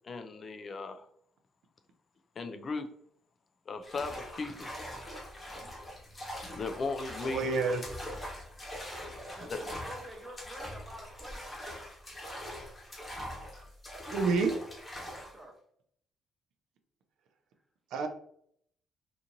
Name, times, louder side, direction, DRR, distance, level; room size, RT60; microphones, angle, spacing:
voice 1, 0.0-1.1 2.4-2.9 3.7-4.9 6.5-7.6 9.5-9.6, left 3 dB, 40° left, 7 dB, 0.3 m, -37 dB
sound 1, 3.8-15.4, equal, 15° left, 0.9 m, -43 dB
voice 2, 7.2-7.8 14.0-14.5 17.9-18.1, right 4 dB, 75° right, 6 dB, 0.4 m, -28 dB
voice 3, 9.2-11.7 15.1-15.5, right 1 dB, 15° right, 1 dB, 0.8 m, -48 dB
2.9 x 2.5 x 2.5 m, 0.66 s
cardioid pair, 115°, 0 cm